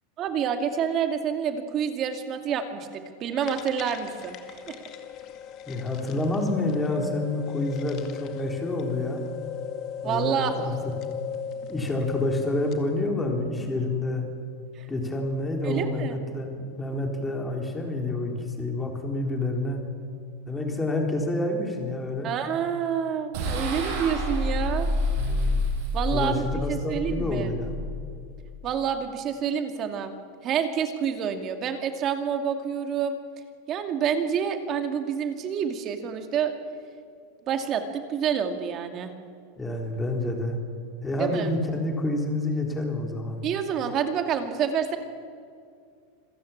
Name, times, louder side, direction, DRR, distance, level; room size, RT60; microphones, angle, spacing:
voice 1, 0.2-4.4 4.7-4.8 10.0-10.5 14.8-14.9 15.6-16.2 22.2-24.9 25.9-26.4 26.7-27.5 28.6-30.1 30.4-33.2 33.7-36.5 37.5-39.1 41.2-41.5 43.4-45.0, right 8 dB, 35° right, 6 dB, 2.3 m, -28 dB
sound 1, 3.4-12.9, left 8 dB, 40° left, 2.0 m, -37 dB
voice 2, 5.7-9.2 10.0-10.9 11.7-14.2 14.9-19.8 20.5-22.3 25.2-25.6 26.1-27.8 39.6-40.6 41.0-43.4, left 2 dB, 10° left, 1 dB, 4.0 m, -28 dB
sound 2, 23.3-28.7, left 1 dB, 65° right, 6.3 m, -28 dB
26.5 x 15.5 x 8.7 m, 2.3 s
supercardioid pair, 140°, 0 cm